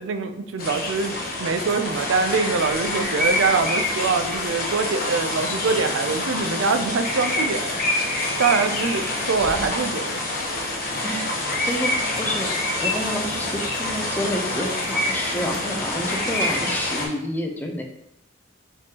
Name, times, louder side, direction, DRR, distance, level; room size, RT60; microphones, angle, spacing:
voice 1, 0.0-7.8 8.4-10.2, right 4 dB, 85° right, 8 dB, 0.4 m, -24 dB
sound 1, 0.6-17.1, left 1 dB, 50° left, 1.0 m, -26 dB
voice 2, 11.0-12.5 12.8-17.8, equal, 10° left, 2 dB, 0.5 m, -29 dB
5.1 x 3.3 x 2.9 m, 0.81 s
head